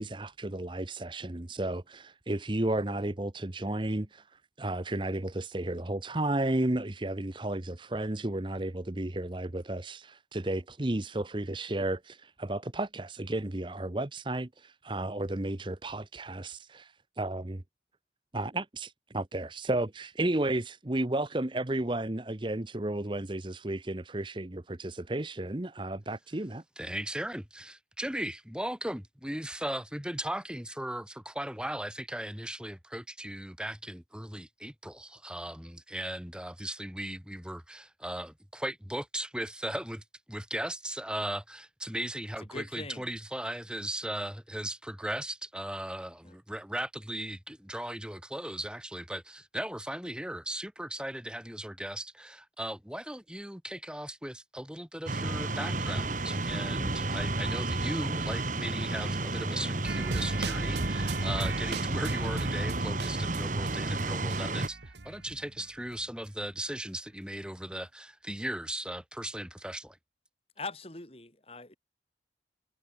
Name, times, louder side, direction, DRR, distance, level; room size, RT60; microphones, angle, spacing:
voice 1, 0.0-17.6 18.3-26.6, right 1 dB, 30° right, 0.9 m, -33 dB
voice 2, 26.8-70.0, right 1 dB, 5° right, 4.9 m, -37 dB
voice 3, 42.5-43.0 46.2-46.3 70.6-71.8, left 3 dB, 35° left, 3.4 m, -41 dB
sound 1, 55.1-64.7, right 2 dB, 45° right, 1.9 m, -32 dB
sound 2, 59.9-65.7 65.9-66.0, right 2 dB, 80° right, 1.5 m, -36 dB
head